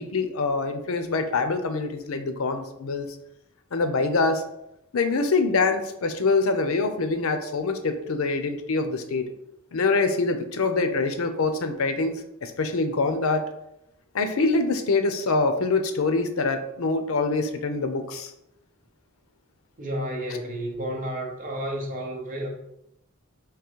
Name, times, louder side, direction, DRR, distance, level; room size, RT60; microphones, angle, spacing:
voice 1, 0.0-3.1 3.7-4.4 4.9-9.3 9.7-12.1 12.4-13.4 14.1-18.3, left 3 dB, 85° left, 8 dB, 0.6 m, -25 dB
voice 2, 19.8-22.5, right 1 dB, 40° right, 0 dB, 1.0 m, -31 dB
3.7 x 3.0 x 4.5 m, 0.83 s
head